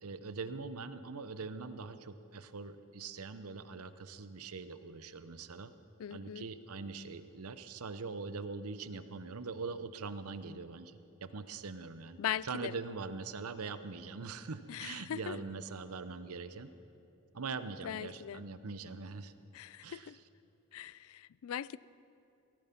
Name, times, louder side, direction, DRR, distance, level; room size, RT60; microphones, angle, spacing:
voice 1, 0.0-5.7 6.1-16.7 17.3-19.3 19.8-20.1, right 4 dB, 85° right, 12 dB, 0.8 m, -42 dB
voice 2, 6.0-6.5 12.2-12.7 14.7-15.4 17.8-18.4 19.5-20.2 20.7-21.8, left 10 dB, 75° left, 20 dB, 0.3 m, -40 dB
18.0 x 13.5 x 5.9 m, 2.8 s
head